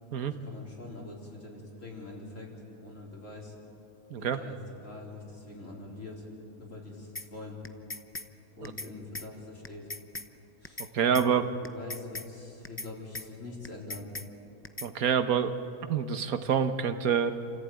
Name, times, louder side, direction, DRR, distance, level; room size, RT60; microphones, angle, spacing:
voice 1, 0.2-2.5 2.8-3.5 4.2-4.6 4.8-6.2 6.6-7.6 8.6-9.9 10.6-10.8 11.1-14.1, left 2 dB, 55° left, -2 dB, 4.4 m, -44 dB
sound 1, 7.2-7.3 7.6-8.3 8.6-8.9 9.1-9.3 9.6-10.3 10.6-10.9 11.1-11.3 11.6-12.3 12.6-12.9 13.1-13.3 13.6-14.3 14.6-14.9, left 2 dB, 20° left, 0.3 m, -39 dB
voice 2, 10.9-11.5 14.8-15.5 15.9-17.3, right 7 dB, 80° right, 9 dB, 1.5 m, -26 dB
28.5 x 15.0 x 9.1 m, 2.7 s
omnidirectional pair, 1.5 m